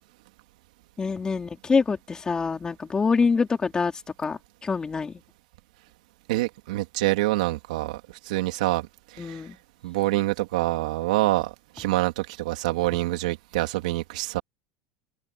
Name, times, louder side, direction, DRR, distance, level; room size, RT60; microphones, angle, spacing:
voice 1, 1.0-3.9 4.2-5.2 9.2-9.6, left 5 dB, 20° left, 3.8 m, -25 dB
voice 2, 6.3-8.0 8.3-8.9 9.1-9.4 9.8-14.4, right 18 dB, 85° right, 3.2 m, -26 dB
supercardioid pair, 115°, 4 cm